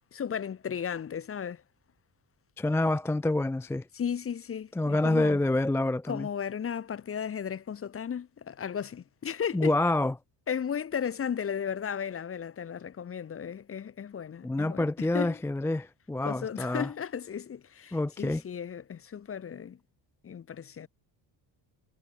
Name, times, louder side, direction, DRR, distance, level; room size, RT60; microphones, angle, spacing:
voice 1, 0.1-1.6 3.9-5.4 6.1-9.8 10.5-15.4 16.2-19.8 20.2-20.9, left 8 dB, 30° left, 0.7 m, -35 dB
voice 2, 2.6-3.9 4.8-6.3 9.5-10.1 14.4-16.9 17.9-18.4, left 2 dB, 5° left, 0.3 m, -27 dB
cardioid pair, 125°, 48 cm